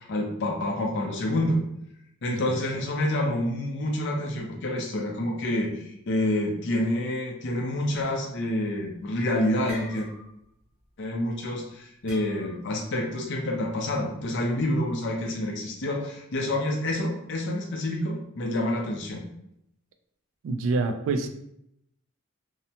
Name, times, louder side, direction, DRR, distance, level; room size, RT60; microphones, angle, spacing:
voice 1, 0.1-1.6 2.2-10.1 11.0-19.2, left 1 dB, 55° left, 1 dB, 0.5 m, -28 dB
voice 2, 2.3-2.6 20.4-21.3, right 3 dB, 65° right, 7 dB, 0.3 m, -27 dB
sound 1, 8.8-9.1 9.4-10.5 10.8-11.1 12.1-12.8, left 1 dB, 5° right, 0.7 m, -44 dB
2.7 x 2.1 x 2.7 m, 0.77 s
head